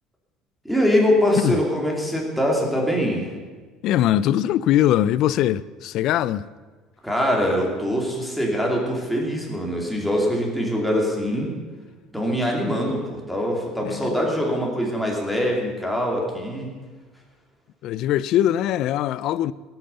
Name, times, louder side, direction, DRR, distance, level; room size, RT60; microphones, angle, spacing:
voice 1, 0.6-3.3 7.0-11.5 12.1-16.7, equal, ahead, 2.7 m, -23 dB
voice 2, 3.8-6.5 13.8-14.2 17.8-19.5, left 12 dB, 50° left, 0.4 m, -21 dB
18.0 x 8.9 x 6.9 m
cardioid pair, 160°, 0 cm